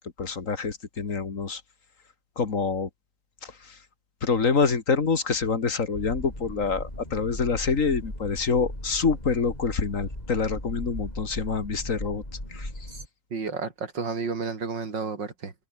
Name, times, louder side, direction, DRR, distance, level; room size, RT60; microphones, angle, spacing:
voice 1, 0.2-1.6 2.4-2.9 4.2-12.2 12.5-12.7, left 5 dB, 45° left, 2.3 m, -26 dB
sound 1, 5.9-13.1, left 1 dB, 20° left, 8.0 m, -37 dB
voice 2, 13.3-15.5, right 4 dB, 90° right, 3.8 m, -31 dB
omnidirectional pair, 1.9 m